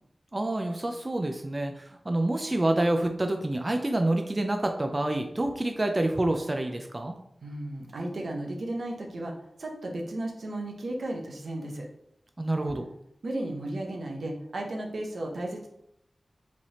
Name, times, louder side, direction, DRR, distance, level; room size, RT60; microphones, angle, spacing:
voice 1, 0.3-7.1 12.4-12.9, right 1 dB, 35° right, 4 dB, 0.5 m, -27 dB
voice 2, 7.4-11.9 13.2-15.7, right 1 dB, 80° right, 1 dB, 0.8 m, -34 dB
5.0 x 3.4 x 2.9 m, 0.76 s
cardioid pair, 45°, 0 cm